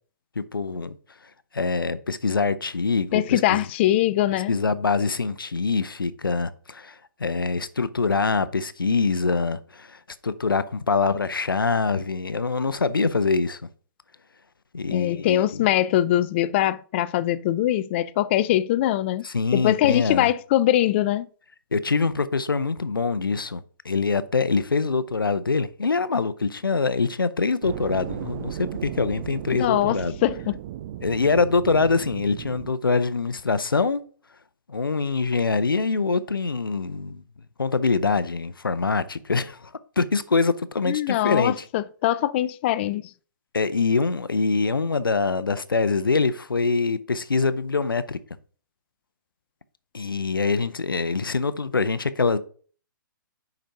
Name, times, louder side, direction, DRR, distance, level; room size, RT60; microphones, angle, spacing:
voice 1, 0.4-0.9 1.5-3.7 4.5-13.6 14.7-15.6 19.2-20.3 21.7-30.2 31.0-34.0 34.7-37.2 37.6-39.7 40.0-41.6 43.5-48.2 49.9-52.4, left 4 dB, 85° left, 0.6 m, -24 dB
voice 2, 3.1-4.5 14.9-19.3 19.5-21.3 29.5-30.6 40.9-43.1, left 13 dB, 35° left, 0.4 m, -22 dB
sound 1, 27.6-32.7, right 12 dB, 35° right, 0.4 m, -36 dB
5.2 x 5.1 x 5.6 m
figure-of-eight pair, 130°, 11 cm